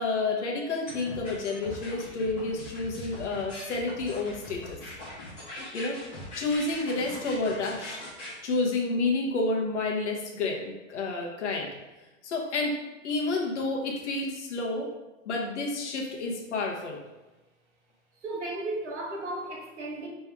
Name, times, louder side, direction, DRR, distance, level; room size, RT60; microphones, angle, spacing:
voice 1, 0.0-4.8 5.7-6.0 6.3-8.0 8.4-11.7 12.2-12.8 13.0-14.9 15.2-17.0, left 3 dB, 55° left, 0 dB, 1.0 m, -30 dB
sound 1, 0.9-8.3, left 1 dB, 15° left, 1.1 m, -41 dB
voice 2, 18.2-20.1, right 2 dB, 55° right, -1 dB, 1.3 m, -34 dB
4.5 x 3.4 x 3.4 m, 1.1 s
hypercardioid pair, 175°, 41 cm